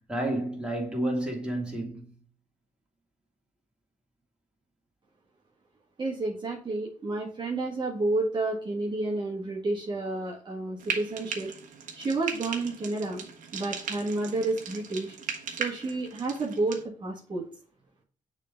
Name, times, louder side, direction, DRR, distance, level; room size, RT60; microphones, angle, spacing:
voice 1, 0.1-2.1, right 1 dB, 5° right, 2.5 m, -30 dB
voice 2, 6.0-11.5 12.0-13.2 13.5-15.2 15.5-17.5, right 2 dB, 35° right, 1.6 m, -30 dB
Frying (food), 10.8-16.8, right 6 dB, 80° right, 1.1 m, -38 dB
6.5 x 3.8 x 5.1 m
cardioid pair, 80°, 13 cm